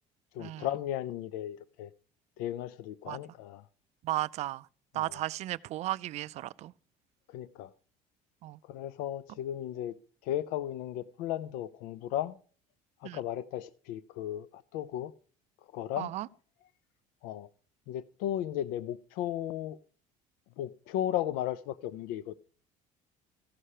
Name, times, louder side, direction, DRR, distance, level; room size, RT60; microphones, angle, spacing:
voice 1, 0.3-1.9 2.4-3.7 4.9-5.2 7.3-7.7 8.6-9.9 10.2-12.4 13.0-15.1 15.7-16.1 17.2-17.5 17.9-19.8 20.6-22.3, left 12 dB, 80° left, 0.5 m, -35 dB
voice 2, 4.0-4.7 4.9-6.7 8.4-8.6 13.0-13.2 16.0-16.3, right 16 dB, 50° right, 0.4 m, -35 dB
15.0 x 5.5 x 4.8 m
cardioid pair, 135°, 15 cm